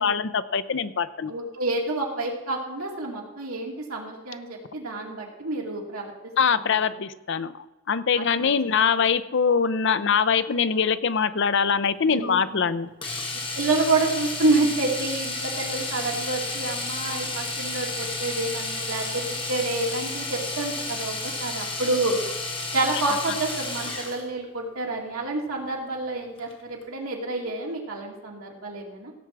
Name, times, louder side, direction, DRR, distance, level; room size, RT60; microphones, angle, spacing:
voice 1, 0.0-1.3 6.4-12.9, left 6 dB, 55° left, 13 dB, 0.5 m, -23 dB
voice 2, 1.3-6.1 8.3-8.5 10.1-10.2 12.1-12.7 13.5-22.2 22.7-29.1, right 2 dB, 80° right, -1 dB, 2.6 m, -28 dB
Domestic sounds home sounds, 13.0-24.2 26.4-26.5 26.8-26.9, left 2 dB, 25° left, 1.7 m, -32 dB
17.0 x 7.3 x 4.7 m, 1.1 s
head